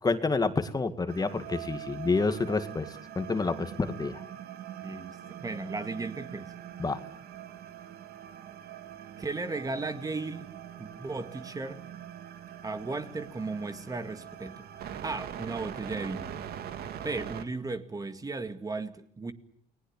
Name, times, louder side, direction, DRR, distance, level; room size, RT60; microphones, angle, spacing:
voice 1, 0.0-4.2 6.8-7.0, left 3 dB, 20° left, 10 dB, 2.1 m, -29 dB
sound 1, 1.1-17.5, right 10 dB, 65° right, 2.6 m, -43 dB
voice 2, 4.8-6.5 9.2-10.5 10.8-11.8 12.6-14.6 15.0-16.4 17.0-19.3, right 3 dB, 20° right, 9 dB, 2.0 m, -35 dB
30.0 x 20.5 x 8.8 m, 0.65 s
cardioid pair, 110°, 17 cm